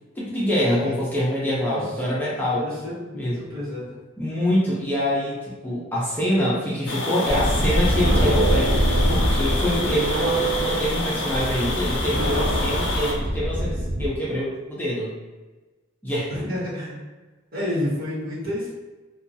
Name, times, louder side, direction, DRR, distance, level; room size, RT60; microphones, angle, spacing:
voice 1, 0.2-2.7 3.1-3.5 4.2-5.3 5.6-8.7 9.1-15.1 16.0-16.3, equal, 10° left, -8 dB, 0.6 m, -25 dB
voice 2, 2.6-3.2 3.5-3.9 16.3-17.0 17.5-18.7, left 1 dB, 50° right, -9 dB, 1.3 m, -29 dB
sound 1, 6.9-13.1, left 2 dB, 65° left, 0.5 m, -29 dB
sound 2, 7.3-14.1, right 1 dB, 65° right, 0.5 m, -23 dB
2.7 x 2.3 x 2.6 m, 1.2 s
head